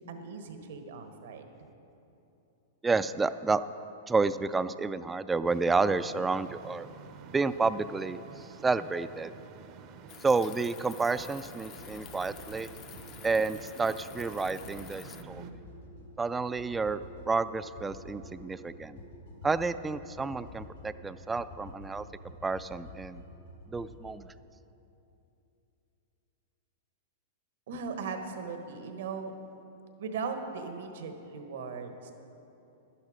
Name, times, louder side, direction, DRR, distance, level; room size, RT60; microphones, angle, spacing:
voice 1, 0.1-1.4 27.7-29.3 30.0-32.1, right 5 dB, 75° right, 6 dB, 1.3 m, -38 dB
voice 2, 2.8-3.6 4.1-6.9 7.3-9.3 10.2-12.7 13.2-15.4 16.2-17.0 17.3-19.0 19.4-22.1 22.4-23.2 23.7-24.3, right 4 dB, 10° right, 14 dB, 0.3 m, -30 dB
sound 1, 5.4-15.5, right 6 dB, 45° right, 0.7 m, -49 dB
sound 2, 10.1-15.2, left 10 dB, 35° left, 0.5 m, -50 dB
sound 3, 11.8-24.2, left 1 dB, 85° left, 3.2 m, -49 dB
11.5 x 11.0 x 5.0 m, 2.9 s
hypercardioid pair, 125°, 0 cm